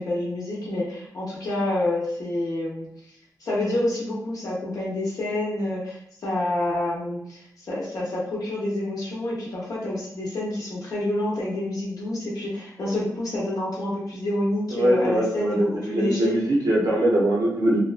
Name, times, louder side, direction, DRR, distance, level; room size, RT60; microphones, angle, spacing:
voice 1, 0.0-2.9 3.4-16.3, left 1 dB, 65° left, -6 dB, 0.6 m, -28 dB
voice 2, 14.7-17.8, right 1 dB, 70° right, -3 dB, 0.7 m, -22 dB
2.6 x 2.2 x 2.4 m, 0.75 s
wide cardioid pair, 160°, 7 cm